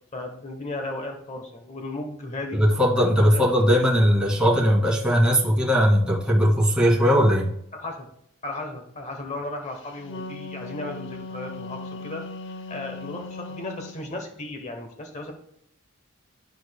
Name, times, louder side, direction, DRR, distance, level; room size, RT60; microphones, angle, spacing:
voice 1, 0.1-2.6 3.3-3.7 7.7-8.1 8.4-12.2 12.7-15.3, left 2 dB, 35° left, 4 dB, 0.9 m, -35 dB
voice 2, 2.5-7.5, equal, 5° right, -4 dB, 1.8 m, -19 dB
Wind instrument woodwind instrument, 9.8-14.0, left 2 dB, 60° left, 0.7 m, -38 dB
11.5 x 4.6 x 2.2 m, 0.71 s
head